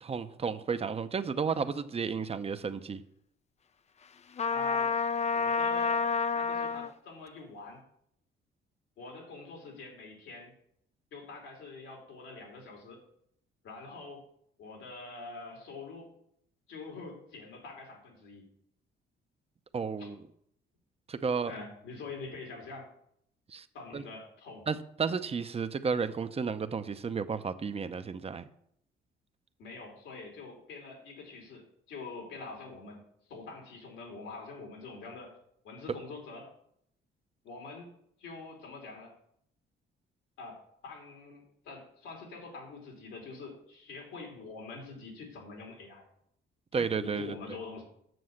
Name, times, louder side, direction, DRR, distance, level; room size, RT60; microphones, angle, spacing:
voice 1, 0.0-3.0 19.7-20.2 21.1-21.5 23.5-23.7 23.9-24.0 24.7-28.5 46.7-47.3, right 5 dB, 30° right, 11 dB, 0.7 m, -32 dB
Trumpet, 4.4-6.9, left 5 dB, 35° left, 0.5 m, -29 dB
voice 2, 4.5-5.0 5.3-6.1 6.3-7.8 9.0-10.5 11.1-13.0 13.6-14.2 14.6-16.1 16.7-18.5 20.0-20.1 21.5-22.9 23.7-24.7 29.6-33.0 33.3-35.3 35.6-36.5 37.4-37.9 38.2-39.1 40.4-46.0 46.7-47.8, left 3 dB, 90° left, 1 dB, 3.2 m, -45 dB
7.8 x 6.9 x 6.5 m, 0.71 s
cardioid pair, 90°, 20 cm